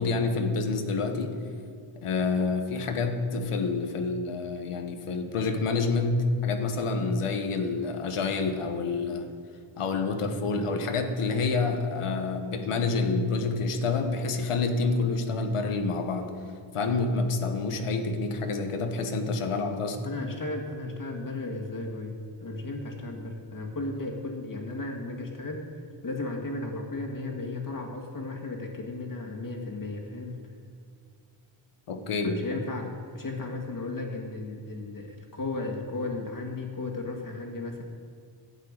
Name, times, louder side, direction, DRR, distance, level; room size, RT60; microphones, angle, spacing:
voice 1, 0.0-1.4 2.0-9.3 9.8-16.3 16.7-20.0 31.9-32.4, left 3 dB, 85° left, 6 dB, 1.3 m, -28 dB
voice 2, 20.0-30.4 32.2-37.8, left 2 dB, 40° left, 1 dB, 2.2 m, -35 dB
12.5 x 7.5 x 9.0 m, 2.3 s
wide cardioid pair, 110°, 50 cm